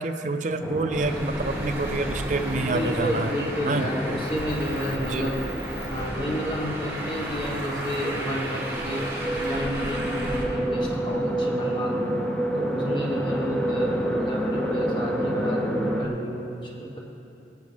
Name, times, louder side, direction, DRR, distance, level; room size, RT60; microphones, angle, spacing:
voice 1, 0.0-3.3 3.6-3.9 5.0-5.3, right 2 dB, 45° right, 8 dB, 0.5 m, -27 dB
sound 1, 0.6-16.1, right 1 dB, 5° left, 0.6 m, -30 dB
Traffic noise roadway noise, 0.9-10.4, right 1 dB, 15° right, 1.3 m, -35 dB
voice 2, 2.5-5.5 5.9-12.1 12.5-17.0, equal, 25° left, -2 dB, 1.5 m, -31 dB
17.0 x 8.2 x 3.4 m, 2.9 s
head